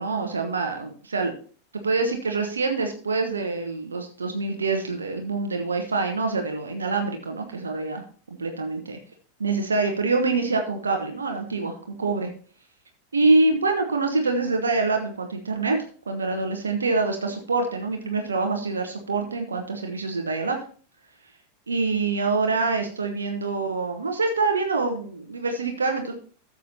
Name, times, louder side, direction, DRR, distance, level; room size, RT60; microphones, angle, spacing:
voice 1, 0.0-1.3 1.8-9.0 9.4-12.3 13.1-15.8 16.1-20.6 21.7-26.1, right 3 dB, 75° right, 4 dB, 1.0 m, -25 dB
13.5 x 7.2 x 2.7 m, 0.42 s
figure-of-eight pair, 90°, 0 cm